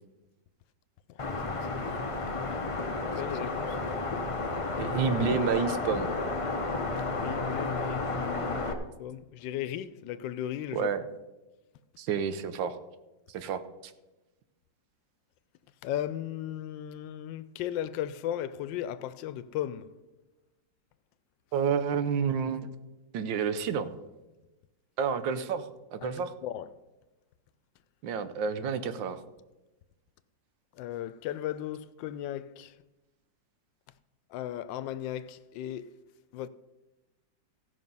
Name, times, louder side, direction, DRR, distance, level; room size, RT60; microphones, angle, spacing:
sound 1, 1.2-8.7, left 3 dB, 60° left, 0.3 m, -32 dB
voice 1, 1.5-2.7 3.0-3.8 7.1-8.1 9.0-10.9 15.8-19.9 26.0-26.1 26.4-26.7 30.8-32.7 34.3-35.9 36.3-36.5, left 11 dB, 80° left, 1.3 m, -36 dB
voice 2, 4.8-6.1 10.7-11.0 12.0-12.8 13.3-13.9 21.5-22.7 23.1-23.9 25.0-26.3 28.0-29.2, right 6 dB, 85° right, 1.5 m, -30 dB
15.5 x 5.9 x 5.4 m
omnidirectional pair, 2.0 m